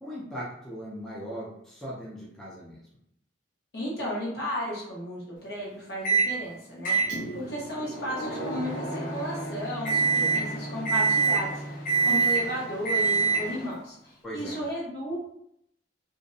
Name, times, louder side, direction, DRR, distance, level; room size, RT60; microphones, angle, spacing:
voice 1, 0.0-2.8 14.2-14.6, equal, 5° left, -7 dB, 0.4 m, -39 dB
voice 2, 3.7-15.2, equal, 60° left, -5 dB, 1.0 m, -34 dB
Microwave oven, 6.0-6.3 6.8-13.7, right 4 dB, 45° left, 0.6 m, -26 dB
Bowed string instrument, 7.7-13.2, right 1 dB, 85° left, 1.1 m, -41 dB
2.5 x 2.1 x 2.6 m, 0.73 s
head